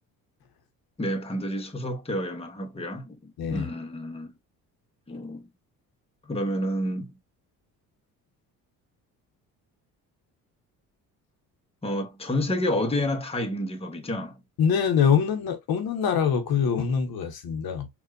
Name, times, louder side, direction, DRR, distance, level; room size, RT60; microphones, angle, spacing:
voice 1, 1.0-3.2 3.5-4.3 5.1-5.4 6.3-7.2 11.8-14.4, left 1 dB, 15° left, 1.0 m, -29 dB
voice 2, 3.4-3.7 14.6-17.9, left 7 dB, 65° left, 1.0 m, -24 dB
4.4 x 2.5 x 2.4 m
supercardioid pair, 70°, 39 cm